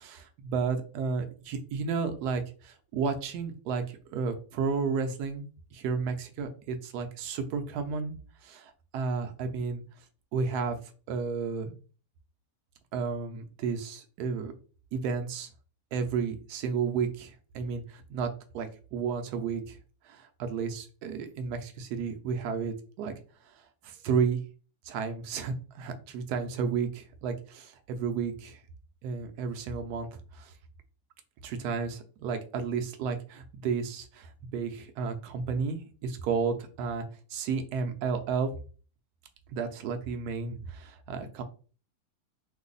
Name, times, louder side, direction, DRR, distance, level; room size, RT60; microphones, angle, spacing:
voice 1, 0.0-5.4 5.7-8.1 8.4-9.8 10.3-10.8 11.1-11.7 12.9-14.5 14.9-15.5 15.9-19.8 20.1-23.1 23.8-24.4 24.9-28.6 29.0-30.5 31.4-37.0 37.3-38.5 39.5-41.4, right 5 dB, 80° right, 7 dB, 1.1 m, -32 dB
3.0 x 2.0 x 3.8 m, 0.37 s
omnidirectional pair, 1.7 m